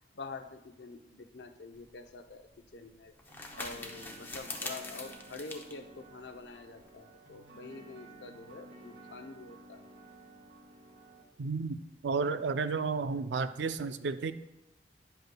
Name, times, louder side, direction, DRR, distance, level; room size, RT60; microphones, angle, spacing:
voice 1, 0.1-9.8, left 3 dB, 75° left, 7 dB, 0.6 m, -47 dB
sound 1, 1.7-6.9, left 2 dB, 10° left, 0.6 m, -45 dB
sound 2, 3.3-11.2, right 2 dB, 70° right, 1.8 m, -54 dB
voice 2, 11.4-14.3, right 4 dB, 85° right, 12 dB, 0.4 m, -32 dB
11.0 x 7.9 x 2.2 m, 0.89 s
head